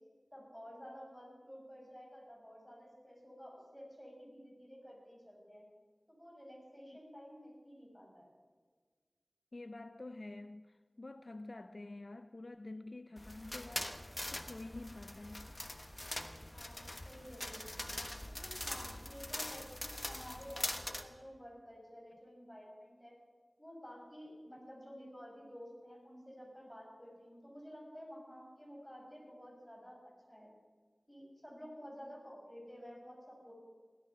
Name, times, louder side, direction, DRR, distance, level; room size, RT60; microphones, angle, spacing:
voice 1, 0.3-5.6 6.1-8.3 16.5-17.8 18.2-23.1 23.6-30.0 30.3-30.5 31.1-33.5, equal, 5° left, 6.5 m, -52 dB
voice 2, 9.5-14.0 14.3-15.5, left 2 dB, 55° left, 0.5 m, -48 dB
sound 1, 13.2-21.0, left 1 dB, 25° left, 1.2 m, -43 dB
17.0 x 13.0 x 5.9 m
wide cardioid pair, 65°, 0 cm